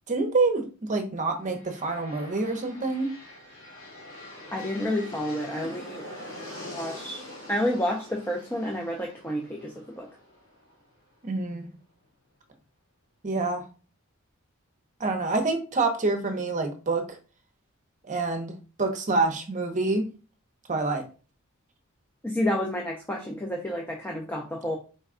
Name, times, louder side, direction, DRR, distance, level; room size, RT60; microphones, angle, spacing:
voice 1, 0.1-3.1 11.2-11.7 13.2-13.6 15.0-17.2 18.0-20.1 20.7-21.1, right 3 dB, 35° right, 0.7 m, -27 dB
sound 1, 1.4-11.2, left 1 dB, 75° left, 2.2 m, -44 dB
voice 2, 4.5-6.0 6.7-10.1 22.2-24.8, left 1 dB, 10° left, 0.5 m, -30 dB
4.2 x 2.2 x 3.6 m
head